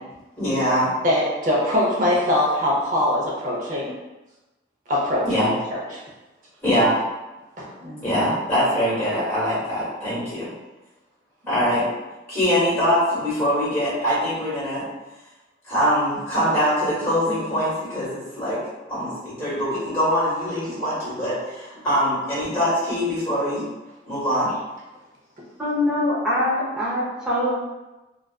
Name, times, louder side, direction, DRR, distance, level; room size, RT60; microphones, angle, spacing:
voice 1, 0.4-0.9 5.2-5.5 6.6-6.9 8.0-10.5 11.5-11.8 12.3-14.8 15.7-18.6 18.9-23.6 24.1-24.5, equal, 15° left, -9 dB, 1.2 m, -23 dB
voice 2, 1.0-3.9 4.9-6.0 7.6-8.1, left 1 dB, 45° right, -4 dB, 0.6 m, -23 dB
voice 3, 25.6-27.6, left 1 dB, 5° right, -9 dB, 0.6 m, -23 dB
2.4 x 2.3 x 2.2 m, 1.1 s
head